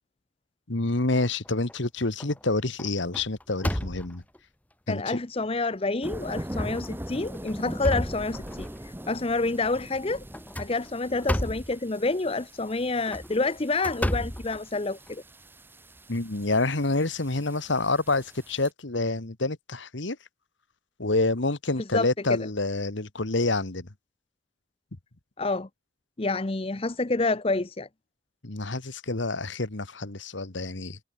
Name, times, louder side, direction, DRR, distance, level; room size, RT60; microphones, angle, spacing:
voice 1, 0.7-4.2 4.9-5.2 16.1-20.2 21.0-23.9 28.4-31.0, left 2 dB, 65° left, 1.7 m, -28 dB
sound 1, 1.2-1.7 2.2-2.4 2.8-4.4 5.1-5.2 5.6-5.7 6.6-6.9 7.3-8.8 10.3-11.8 12.9-15.1, equal, 10° left, 1.1 m, -32 dB
voice 2, 4.9-10.2 10.6-15.2 21.9-22.1 25.4-25.7 26.2-27.9, left 3 dB, 30° left, 0.7 m, -28 dB
sound 2, 6.0-18.7, equal, 10° right, 2.1 m, -41 dB
head